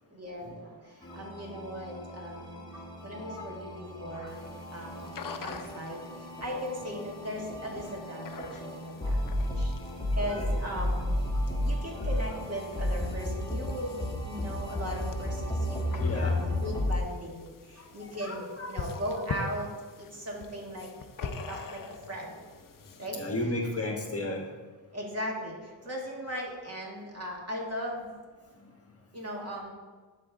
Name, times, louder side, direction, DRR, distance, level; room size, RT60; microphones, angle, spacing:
voice 1, 0.1-2.7 3.0-9.2 9.6-9.7 10.1-11.1 11.6-14.0 14.2-19.7 20.0-20.9 21.2-22.4 23.0-23.2 24.9-28.1 29.1-29.7, equal, 35° right, -1 dB, 2.0 m, -38 dB
sound 1, 1.0-17.0, left 1 dB, 10° left, 1.4 m, -33 dB
sound 2, 4.3-23.1, left 5 dB, 45° left, 0.7 m, -45 dB
voice 2, 10.1-10.6 15.9-16.4 17.8-19.1 19.4-19.5 23.1-24.4, left 2 dB, 30° left, 1 dB, 1.2 m, -35 dB
11.5 x 4.4 x 3.6 m, 1.5 s
cardioid pair, 70°, 45 cm